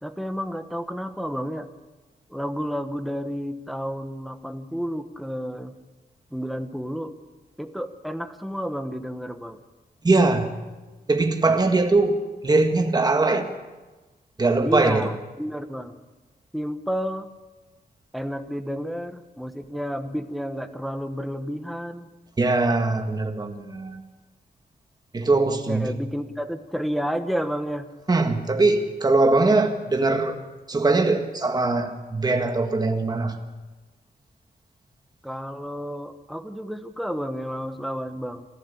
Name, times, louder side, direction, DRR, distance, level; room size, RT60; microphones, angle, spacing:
voice 1, 0.0-1.7 2.3-5.7 6.3-7.1 7.6-9.6 14.6-16.0 16.5-17.3 18.1-22.1 25.7-27.9 35.2-38.5, equal, ahead, 8 dB, 1.2 m, -31 dB
voice 2, 10.0-10.5 11.1-12.2 12.4-13.5 14.4-15.1 22.4-24.0 25.1-25.9 28.1-30.4 30.7-33.4, right 3 dB, 25° right, 5 dB, 1.9 m, -21 dB
27.0 x 14.0 x 8.4 m, 1.2 s
wide cardioid pair, 160°, 17 cm